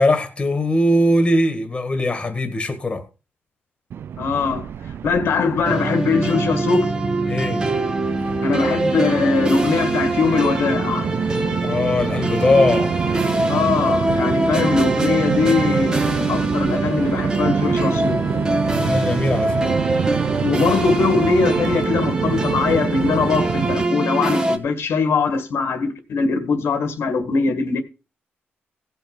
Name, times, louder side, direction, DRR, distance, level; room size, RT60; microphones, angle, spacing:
voice 1, 0.0-3.1 7.3-7.7 11.6-13.1 18.6-19.7, left 1 dB, 25° left, 1.8 m, -20 dB
Train, 3.9-23.9, right 8 dB, 65° right, 0.5 m, -27 dB
voice 2, 4.2-4.7 5.0-6.9 8.4-11.1 13.5-18.3 20.4-27.8, left 4 dB, 75° left, 1.9 m, -21 dB
sound 1, 5.6-24.6, right 2 dB, 20° right, 1.5 m, -23 dB
16.5 x 5.6 x 5.5 m
wide cardioid pair, 135°, 4 cm